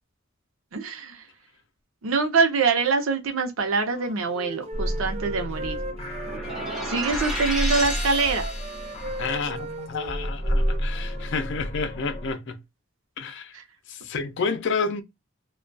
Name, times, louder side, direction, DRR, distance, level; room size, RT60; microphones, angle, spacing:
voice 1, 0.7-1.2 2.0-5.8 6.8-8.5 13.5-13.6, right 4 dB, 85° right, 0.7 m, -24 dB
Wind instrument woodwind instrument, 3.8-7.2 7.6-11.3, right 2 dB, 30° right, 0.3 m, -38 dB
sound 1, 4.7-12.3, equal, 30° left, 0.8 m, -31 dB
sound 2, 6.2-9.0, equal, ahead, 0.9 m, -32 dB
voice 2, 9.2-12.6 13.2-13.5 13.9-15.0, left 4 dB, 60° left, 0.5 m, -30 dB
2.3 x 2.2 x 2.5 m
head